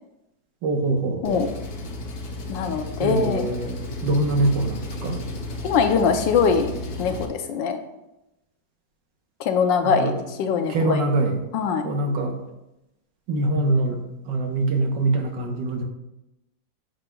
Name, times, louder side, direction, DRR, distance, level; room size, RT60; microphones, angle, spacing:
voice 1, 0.6-1.4 3.0-5.2 9.8-10.1 10.7-11.4 11.8-12.3 13.3-14.0 14.3-15.8, right 2 dB, 75° right, 3 dB, 1.6 m, -23 dB
Engine, 1.2-7.3, left 2 dB, 60° left, 1.3 m, -33 dB
voice 2, 2.5-3.4 5.6-6.7 7.0-7.8 9.4-10.1 10.4-11.0 11.5-11.9, left 6 dB, 80° left, 6 dB, 1.4 m, -22 dB
9.6 x 6.2 x 2.3 m, 0.92 s
omnidirectional pair, 2.0 m